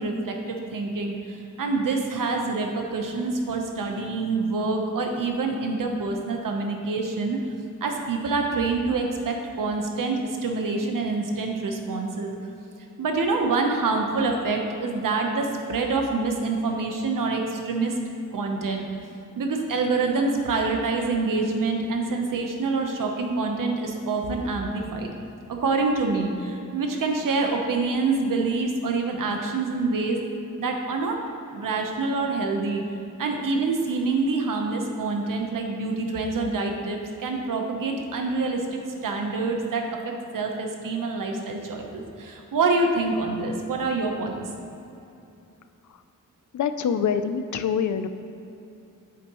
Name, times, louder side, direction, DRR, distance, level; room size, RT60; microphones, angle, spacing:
voice 1, 0.0-7.4 7.8-12.3 13.0-17.9 18.3-18.9 19.4-25.1 25.5-30.2 30.6-31.2 31.5-32.8 33.2-44.4, right 3 dB, 80° right, 2 dB, 1.0 m, -26 dB
voice 2, 46.5-48.1, left 7 dB, 65° left, 10 dB, 0.5 m, -25 dB
9.1 x 7.6 x 3.1 m, 2.8 s
wide cardioid pair, 130°, 32 cm